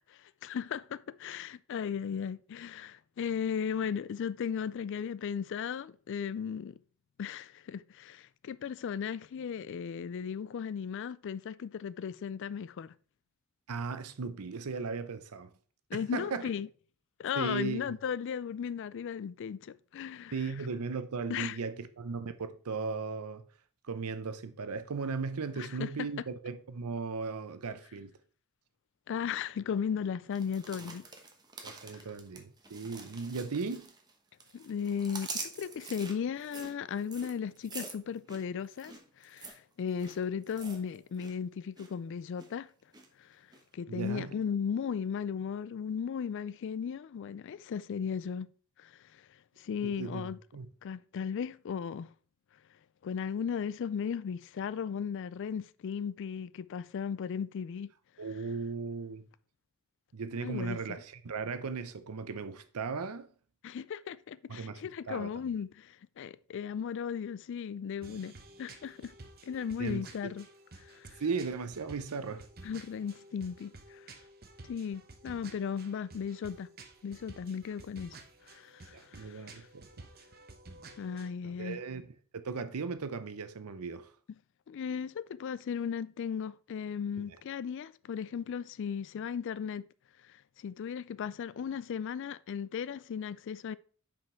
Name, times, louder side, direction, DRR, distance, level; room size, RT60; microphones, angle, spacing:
voice 1, 0.1-6.8 7.2-12.9 15.9-16.7 17.2-20.3 21.3-21.6 25.6-25.9 29.1-31.1 32.0-32.1 34.5-42.7 43.2-43.3 43.7-48.5 48.8-49.2 49.6-50.4 50.8-52.1 53.0-57.9 60.4-60.8 63.6-69.1 69.4-70.5 70.8-71.2 72.6-74.1 74.6-76.7 77.0-78.2 78.5-79.7 81.0-81.8 84.7-89.9 90.3-93.8, left 7 dB, 55° left, 0.3 m, -36 dB
voice 2, 13.7-15.5 15.9-16.5 17.4-17.8 20.3-23.4 23.9-28.1 31.6-33.9 43.9-44.3 49.8-50.7 58.2-59.2 60.1-63.3 64.5-64.8 65.1-65.5 69.8-70.3 71.2-72.4 78.9-79.8 81.4-82.1 82.4-84.1 87.2-87.3, right 4 dB, 85° right, 0.6 m, -37 dB
sound 1, 30.3-34.1 34.4-41.3 41.6-41.9 42.4-43.1 43.5-43.6, right 4 dB, 20° right, 0.9 m, -46 dB
sound 2, 68.0-81.3, right 2 dB, 45° right, 0.9 m, -52 dB
6.0 x 5.1 x 4.4 m
head